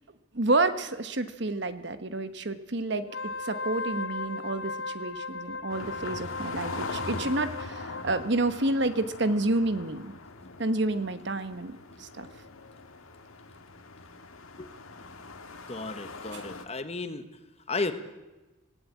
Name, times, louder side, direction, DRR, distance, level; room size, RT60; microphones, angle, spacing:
voice 1, 0.3-3.1 3.4-10.1 10.6-12.3 16.3-16.4, right 2 dB, 55° right, 11 dB, 1.2 m, -29 dB
Wind instrument woodwind instrument, 3.0-8.3, left 3 dB, 60° left, 0.7 m, -37 dB
sound 1, 5.7-16.6, left 3 dB, 85° left, 1.8 m, -42 dB
voice 2, 15.7-17.3 17.7-17.9, left 3 dB, 30° left, 9 dB, 1.3 m, -34 dB
18.0 x 17.5 x 8.5 m, 1.1 s
head